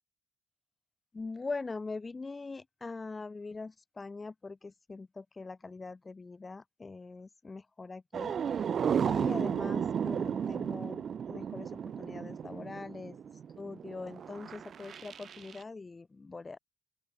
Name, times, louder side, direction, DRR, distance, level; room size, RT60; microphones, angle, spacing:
voice 1, 1.1-8.7 9.0-13.2 13.6-16.6, left 3 dB, 25° left, 4.4 m, -42 dB
sound 1, 8.1-15.6, right 7 dB, 55° right, 4.2 m, -34 dB
open air
cardioid pair, 90°, 0 cm